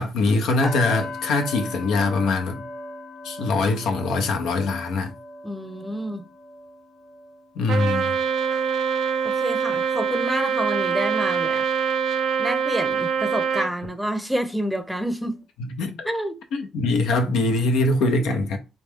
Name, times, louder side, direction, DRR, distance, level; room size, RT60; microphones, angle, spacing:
voice 1, 0.0-2.6 3.2-5.1 7.6-8.2 15.8-16.1 16.5-18.6, left 3 dB, 85° left, 0.8 m, -23 dB
sound 1, 0.6-10.6 10.9-11.2 11.6-11.8, left 2 dB, 50° left, 1.2 m, -39 dB
voice 2, 5.4-6.2 9.2-11.6 12.4-15.4 16.0-16.4, equal, ahead, 0.6 m, -28 dB
Trumpet, 7.7-13.7, right 6 dB, 70° right, 0.6 m, -24 dB
4.1 x 2.3 x 3.5 m
cardioid pair, 90°, 0 cm